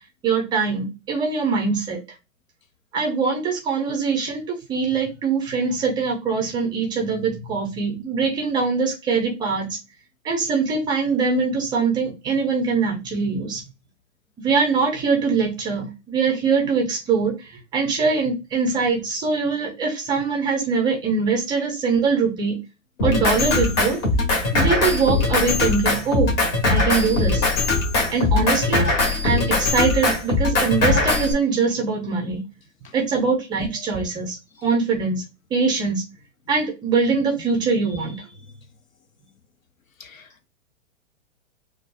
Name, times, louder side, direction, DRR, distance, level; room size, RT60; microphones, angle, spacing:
voice 1, 0.2-2.0 2.9-9.8 10.2-13.6 14.4-22.6 23.0-24.1 24.5-26.3 26.7-27.5 28.1-28.9 29.2-32.4 32.9-34.4 34.6-35.2 35.5-36.0 36.5-38.2, right 4 dB, 10° right, 0.4 m, -22 dB
Drum kit, 23.0-31.3, left 3 dB, 40° left, 1.6 m, -21 dB
voice 2, 40.0-40.5, left 5 dB, 80° left, 0.8 m, -47 dB
4.0 x 2.3 x 2.2 m
hypercardioid pair, 120°, 40 cm